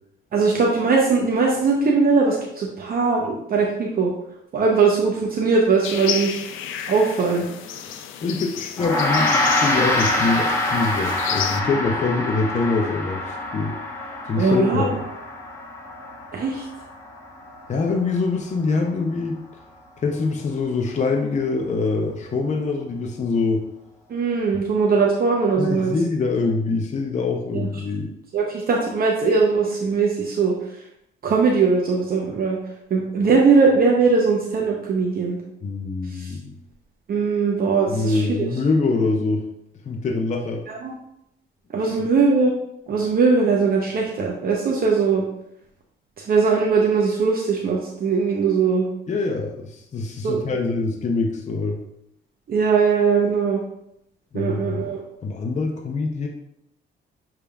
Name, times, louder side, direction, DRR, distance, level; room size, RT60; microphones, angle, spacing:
voice 1, 0.3-4.1 4.5-6.4 6.9-7.4 14.4-14.9 16.3-16.6 24.1-25.9 27.5-27.7 28.3-30.5 31.2-32.6 32.9-35.4 36.1-36.3 37.1-38.5 40.7-40.9 41.7-42.5 42.9-45.2 46.3-48.9 50.2-50.4 52.5-53.6 54.3-55.0, right 4 dB, 50° right, -1 dB, 0.7 m, -20 dB
sound 1, 5.8-11.6, left 9 dB, 80° left, 0.4 m, -32 dB
voice 2, 8.2-13.7 14.2-15.0 17.7-19.4 20.0-23.6 25.6-28.1 35.6-36.5 37.9-39.4 39.9-40.6 49.1-51.8 54.3-54.8 55.2-56.3, left 3 dB, 35° left, 2 dB, 0.6 m, -24 dB
Gong, 8.8-18.3, left 1 dB, 15° left, 1.0 m, -25 dB
6.5 x 3.4 x 2.3 m, 0.79 s
cardioid pair, 90°, 20 cm